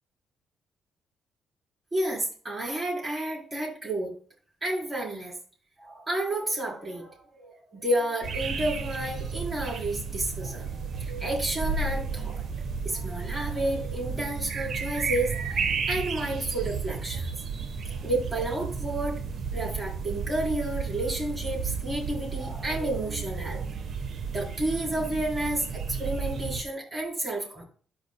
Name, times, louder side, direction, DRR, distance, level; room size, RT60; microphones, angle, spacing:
voice 1, 1.9-4.1 4.6-5.3 5.8-12.5 12.8-17.3 17.9-19.2 19.5-23.8 24.3-27.7, right 1 dB, 25° right, -3 dB, 4.0 m, -31 dB
sound 1, 8.2-26.6, right 5 dB, 55° right, 1.1 m, -33 dB
13.0 x 5.0 x 2.3 m, 0.42 s
cardioid pair, 90°, 0 cm